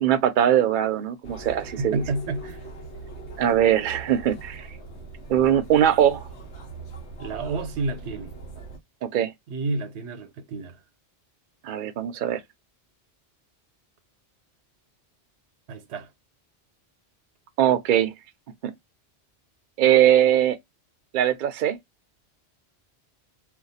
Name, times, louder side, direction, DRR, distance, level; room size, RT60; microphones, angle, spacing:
voice 1, 0.0-2.0 3.4-4.7 5.3-6.2 9.0-9.3 11.6-12.4 17.6-18.1 18.6-18.7 19.8-20.6 21.1-21.8, right 10 dB, 60° right, 0.6 m, -21 dB
sound 1, 1.2-8.8, right 3 dB, 80° left, 1.1 m, -41 dB
voice 2, 1.8-2.7 7.2-8.3 9.5-10.8 15.7-16.1, right 3 dB, 85° right, 0.9 m, -30 dB
2.5 x 2.3 x 4.0 m
omnidirectional pair, 1.1 m